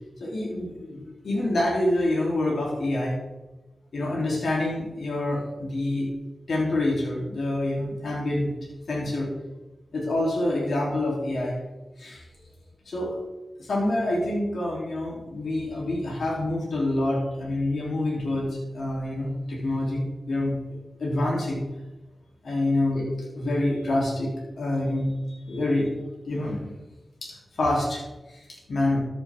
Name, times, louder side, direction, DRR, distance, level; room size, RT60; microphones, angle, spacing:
voice 1, 0.2-3.2 3.9-6.1 6.5-8.5 8.9-9.3 9.9-11.6 12.0-12.2 12.8-13.2 13.6-20.5 21.0-21.6 22.4-23.0 23.3-25.9 26.2-26.7 27.2-29.0, left 1 dB, 80° left, -4 dB, 3.2 m, -27 dB
13.5 x 7.2 x 3.7 m, 1.1 s
cardioid pair, 50°, 0 cm